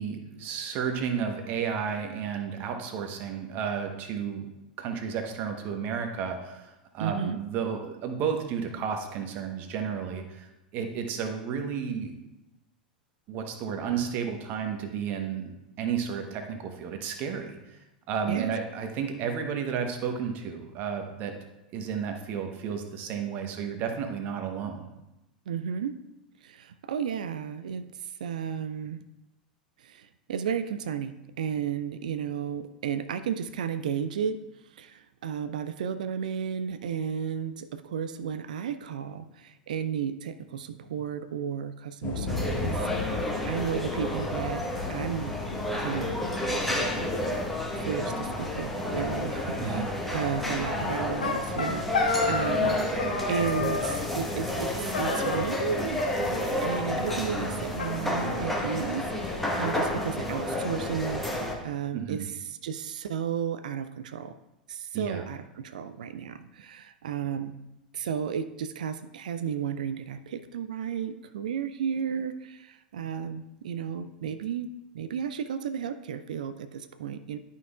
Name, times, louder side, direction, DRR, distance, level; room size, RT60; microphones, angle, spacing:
voice 1, 0.0-4.5 4.8-12.1 13.3-17.8 18.1-21.3 21.7-24.9 49.6-49.9 61.9-62.3 64.9-65.2, right 7 dB, 40° right, 5 dB, 1.0 m, -32 dB
voice 2, 7.0-7.4 18.3-18.5 25.5-26.0 26.4-29.0 29.8-44.6 44.9-45.4 45.8-46.2 47.7-52.8 53.3-64.4 64.7-67.6 67.9-74.7 74.9-77.4, right 8 dB, 65° right, 11 dB, 0.4 m, -33 dB
sound 1, 42.0-59.6, left 3 dB, 35° left, 1.1 m, -40 dB
sound 2, 42.3-61.5, left 1 dB, 5° left, 1.2 m, -30 dB
sound 3, 50.9-52.7 53.0-54.0 54.9-55.7 56.0-56.8 57.1-57.2 57.4-57.5 57.8-58.8, left 3 dB, 75° left, 0.9 m, -31 dB
11.0 x 5.6 x 2.4 m, 0.97 s
figure-of-eight pair, 85°, 5 cm